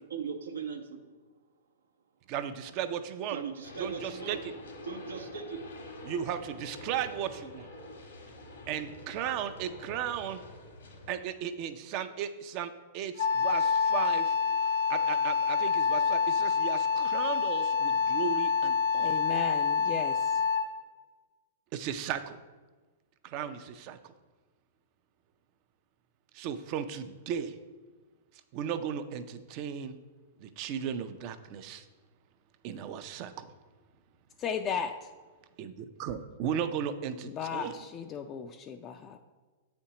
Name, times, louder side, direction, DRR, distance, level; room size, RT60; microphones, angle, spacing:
voice 1, 0.1-1.0 3.3-4.4 4.8-5.6, right 6 dB, 85° right, 5 dB, 0.7 m, -38 dB
voice 2, 2.3-3.4 3.8-4.4 6.0-7.7 8.7-10.4 11.1-14.3 14.9-19.1 21.7-22.4 23.2-24.0 26.3-27.6 28.5-30.0 30.4-31.9 32.6-33.5 35.6-37.7, right 8 dB, 45° right, 10 dB, 0.5 m, -36 dB
sound 1, 3.6-11.2, left 1 dB, 85° left, 1.4 m, -47 dB
Wind instrument woodwind instrument, 13.2-20.8, left 6 dB, 70° left, 0.7 m, -27 dB
voice 3, 19.0-20.4 34.4-34.9 37.2-39.2, left 7 dB, 30° left, 5 dB, 0.3 m, -35 dB
8.2 x 4.3 x 2.9 m, 1.3 s
hypercardioid pair, 120°, 0 cm